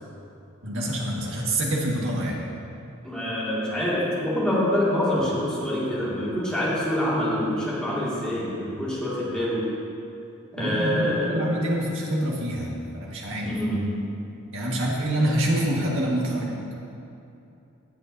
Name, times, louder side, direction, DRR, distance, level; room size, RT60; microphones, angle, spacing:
voice 1, 0.6-2.4 10.6-11.0 11.3-13.5 14.5-16.6, right 1 dB, 60° right, -3 dB, 1.7 m, -26 dB
voice 2, 3.0-9.7 10.5-11.7 13.4-14.0, left 1 dB, 5° left, -8 dB, 2.1 m, -26 dB
16.5 x 7.7 x 2.7 m, 2.8 s
head